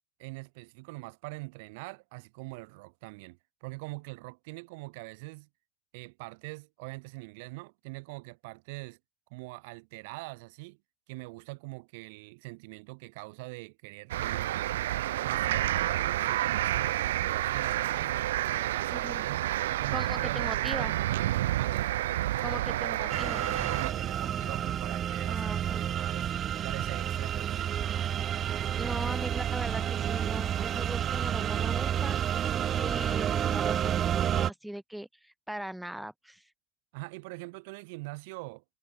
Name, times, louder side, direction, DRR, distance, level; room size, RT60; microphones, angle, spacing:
voice 1, 0.2-5.5 5.9-9.0 9.3-10.8 11.1-14.7 15.2-21.9 23.7-26.3 26.6-28.1 36.9-38.6, right 27 dB, 70° right, 2.4 m, -43 dB
sound 1, 14.1-23.9, right 14 dB, 85° right, 0.5 m, -29 dB
voice 2, 18.9-19.2 19.9-20.9 22.4-23.5 25.3-25.8 28.8-32.2 32.7-36.4, right 1 dB, 5° right, 6.9 m, -39 dB
sound 2, 23.1-34.5, right 10 dB, 35° right, 1.2 m, -30 dB
supercardioid pair, 120°, 0 cm